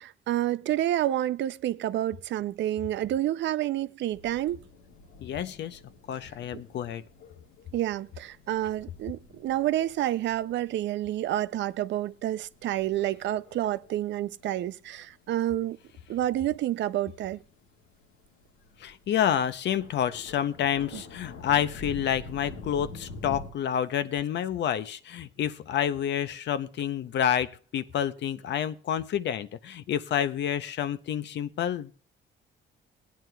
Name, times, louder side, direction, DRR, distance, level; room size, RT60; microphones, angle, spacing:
voice 1, 0.0-4.6 7.7-15.8 16.1-17.4 20.9-21.0, right 13 dB, 65° right, 0.4 m, -29 dB
sound 1, 4.1-23.5, left 2 dB, 90° left, 1.7 m, -47 dB
voice 2, 5.2-5.8 6.1-7.0 18.8-31.9, left 9 dB, 60° left, 0.6 m, -29 dB
18.5 x 9.3 x 2.2 m
cardioid pair, 120°, 20 cm